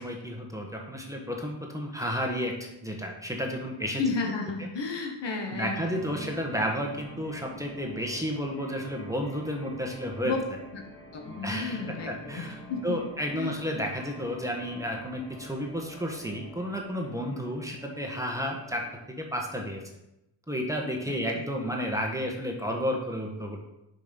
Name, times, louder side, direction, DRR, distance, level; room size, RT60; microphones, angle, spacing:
voice 1, 0.0-4.0 4.6-4.7 5.5-10.3 11.4-18.8 19.2-19.8 20.5-23.6, equal, 5° right, 0 dB, 1.4 m, -32 dB
voice 2, 4.0-6.1 10.2-10.4 10.7-10.8 11.1-13.0 13.4-13.5 21.1-21.2, left 4 dB, 65° left, 3 dB, 1.6 m, -33 dB
sound 1, 5.8-19.1, left 1 dB, 25° left, 3.4 m, -47 dB
6.9 x 5.3 x 5.3 m, 0.88 s
cardioid pair, 90°, 46 cm